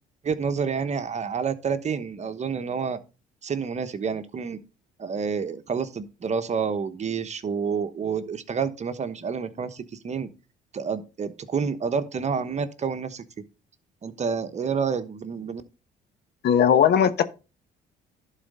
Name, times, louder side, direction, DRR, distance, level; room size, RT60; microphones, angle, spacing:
voice 1, 0.2-3.0 3.4-4.6 5.0-10.3 10.7-13.4 14.0-15.6, right 6 dB, 40° right, 1.0 m, -29 dB
voice 2, 16.4-17.2, left 8 dB, 65° left, 1.1 m, -18 dB
11.5 x 4.1 x 5.4 m
cardioid pair, 95°, 19 cm